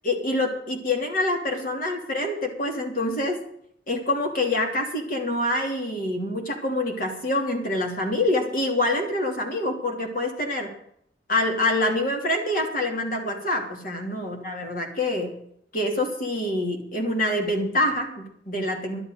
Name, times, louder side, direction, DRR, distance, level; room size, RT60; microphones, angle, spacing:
voice 1, 0.0-3.4 3.9-10.7 11.3-15.4 15.7-19.0, left 1 dB, 50° left, 2 dB, 3.0 m, -26 dB
12.0 x 8.0 x 9.2 m, 0.69 s
head